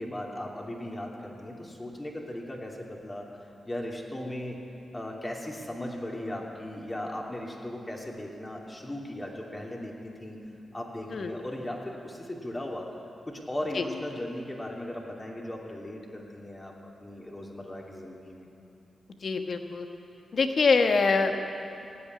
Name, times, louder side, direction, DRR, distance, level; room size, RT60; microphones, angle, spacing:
voice 1, 0.0-3.3 3.7-4.6 4.9-10.4 10.7-12.9 13.3-18.5, left 1 dB, 20° left, -1 dB, 2.8 m, -37 dB
voice 2, 19.2-19.9 20.3-21.5, left 4 dB, 60° left, 6 dB, 1.2 m, -24 dB
16.0 x 8.4 x 9.8 m, 2.7 s
cardioid pair, 55°, 0 cm